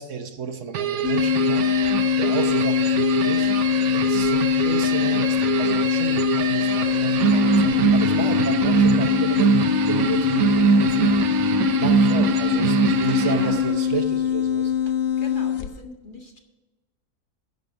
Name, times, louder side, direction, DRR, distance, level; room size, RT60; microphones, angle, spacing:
voice 1, 0.0-1.7 2.2-3.5 3.9-9.5 9.9-11.1 11.4-14.7, right 6 dB, 60° right, 6 dB, 1.2 m, -32 dB
sound 1, 0.7-13.9, right 5 dB, 80° right, 1.2 m, -23 dB
sound 2, 1.0-15.8, left 9 dB, 60° left, 1.0 m, -23 dB
voice 2, 7.2-7.6 13.2-13.6 15.2-16.4, left 3 dB, 35° left, 2 dB, 1.8 m, -40 dB
10.5 x 6.9 x 7.0 m, 1.1 s
omnidirectional pair, 1.5 m